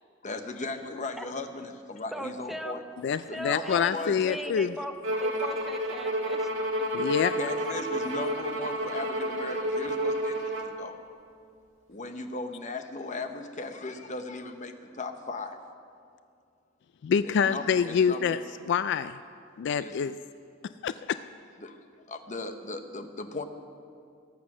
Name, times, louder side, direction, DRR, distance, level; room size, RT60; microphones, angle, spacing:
voice 1, 0.2-2.8 3.3-4.2 4.4-4.6 7.3-10.9 11.9-15.6 17.2-18.3 19.8-20.0 21.6-23.4, left 3 dB, 40° left, 7 dB, 0.9 m, -37 dB
voice 2, 2.1-2.8 3.3-6.5, equal, ahead, 5 dB, 0.7 m, -38 dB
voice 3, 3.0-4.7 6.9-7.4 17.0-18.4 18.7-19.2 19.6-20.2 20.8-21.2, left 7 dB, 60° left, 13 dB, 0.3 m, -26 dB
Bowed string instrument, 5.0-10.8, equal, 90° right, 1.5 m, -30 dB
21.5 x 8.3 x 6.1 m, 2.4 s
head